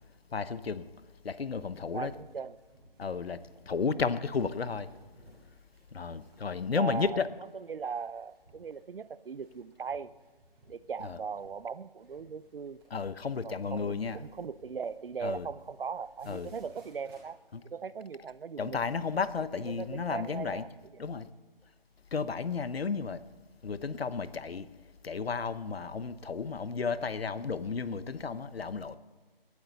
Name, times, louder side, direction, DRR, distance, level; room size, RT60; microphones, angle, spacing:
voice 1, 0.3-0.8 1.2-2.1 3.0-3.4 3.7-4.9 5.9-7.3 11.0-11.2 12.9-14.2 15.2-15.5 16.3-16.5 17.5-17.6 18.6-20.6 21.0-21.3 22.1-23.2 23.6-24.7 25.0-29.0, left 5 dB, 85° left, 1.0 m, -33 dB
voice 2, 1.9-2.6 6.7-7.2 7.7-10.1 10.7-12.8 13.4-17.4 17.6-18.8 19.7-20.7 21.0-21.1, right 6 dB, 65° right, 0.6 m, -39 dB
sound 1, 2.1-17.6, right 1 dB, 10° right, 3.2 m, -62 dB
19.0 x 12.0 x 4.1 m
hypercardioid pair, 175°, 30 cm